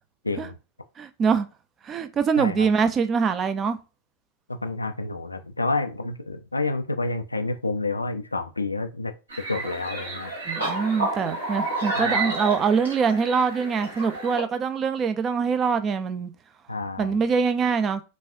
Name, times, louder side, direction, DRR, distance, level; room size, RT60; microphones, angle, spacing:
voice 1, 1.0-1.5 1.8-3.8 10.5-16.3 17.0-18.0, right 6 dB, 25° right, 0.5 m, -24 dB
voice 2, 2.4-2.7 4.5-9.1 9.5-10.3 12.0-12.1 16.7-17.2, left 3 dB, 80° left, 0.4 m, -29 dB
sound 1, 9.3-14.4, right 2 dB, 70° right, 2.1 m, -30 dB
6.1 x 2.3 x 2.7 m
figure-of-eight pair, 90°, 0 cm